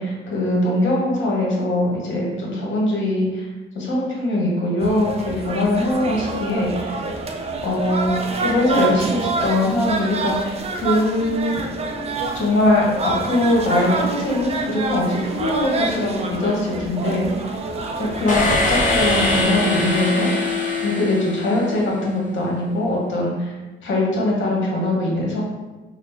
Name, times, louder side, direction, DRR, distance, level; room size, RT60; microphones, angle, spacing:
voice 1, 0.3-3.5 3.7-7.0 7.6-8.1 8.4-11.5 12.3-17.6 18.0-20.3 20.8-25.4, left 1 dB, 70° left, -3 dB, 1.1 m, -21 dB
sound 1, 4.8-18.6, right 3 dB, 30° right, 0.4 m, -27 dB
sound 2, 18.3-22.1, left 2 dB, 40° left, 0.8 m, -22 dB
3.7 x 2.0 x 3.3 m, 1.2 s
cardioid pair, 90°, 20 cm